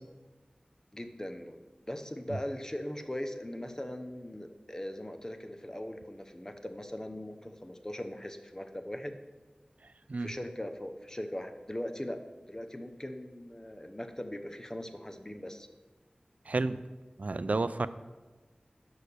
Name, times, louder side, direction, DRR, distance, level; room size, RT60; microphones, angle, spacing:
voice 1, 0.9-1.6 1.9-9.1 10.2-12.2 12.5-15.7, left 1 dB, 20° left, 6 dB, 0.8 m, -40 dB
voice 2, 16.5-16.8 17.2-17.9, right 3 dB, 65° right, 14 dB, 0.4 m, -30 dB
6.4 x 5.6 x 6.7 m, 1.2 s
wide cardioid pair, 50°, 3 cm